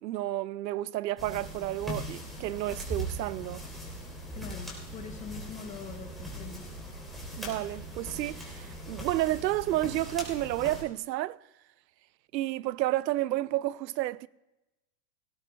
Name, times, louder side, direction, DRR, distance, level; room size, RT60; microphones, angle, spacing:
voice 1, 0.0-3.6 7.4-11.4 12.3-14.3, right 15 dB, 80° right, 0.6 m, -31 dB
sound 1, 1.2-10.8, right 1 dB, ahead, 3.3 m, -40 dB
voice 2, 4.3-6.7, left 6 dB, 15° left, 0.8 m, -43 dB
18.0 x 16.0 x 2.3 m
supercardioid pair, 150°, 50 cm